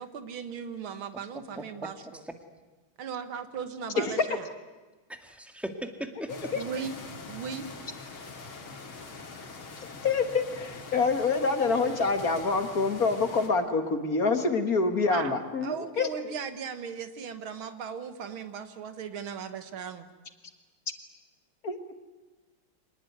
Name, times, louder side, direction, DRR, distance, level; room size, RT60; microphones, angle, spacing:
voice 1, 0.0-2.2 3.0-4.5 6.5-7.0 7.3-7.7 15.1-15.3 15.6-20.1, right 6 dB, 80° right, 10 dB, 2.3 m, -37 dB
voice 2, 1.5-2.3 5.1-6.5, right 1 dB, ahead, 6 dB, 1.8 m, -39 dB
sound 1, 6.3-13.5, left 3 dB, 80° left, 3.3 m, -43 dB
voice 3, 10.0-16.1 21.6-21.8, left 4 dB, 45° left, 8 dB, 2.1 m, -26 dB
25.5 x 19.5 x 9.5 m, 1.2 s
omnidirectional pair, 2.2 m